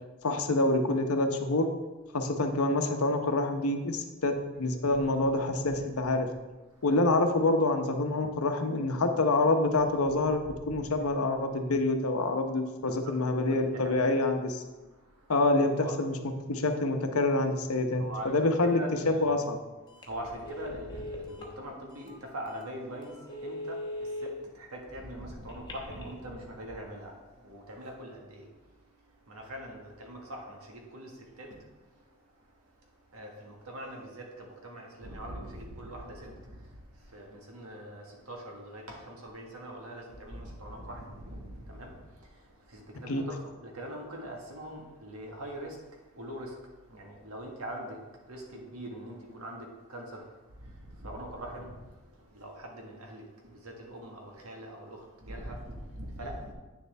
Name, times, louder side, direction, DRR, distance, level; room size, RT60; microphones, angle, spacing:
voice 1, 0.2-1.7 2.1-6.3 6.8-14.6 15.3-16.2 16.5-19.6 43.1-43.2, left 2 dB, 85° left, 0.9 m, -27 dB
voice 2, 12.8-14.1 14.9-15.3 15.7-16.0 18.0-19.4 20.0-56.5, right 1 dB, 85° right, 1.7 m, -43 dB
Telephone, 19.9-20.1 20.4-21.5 22.1-22.2 22.6-22.7 23.2-24.3 25.5-26.1, left 1 dB, 20° left, 1.1 m, -39 dB
9.1 x 6.8 x 3.4 m
head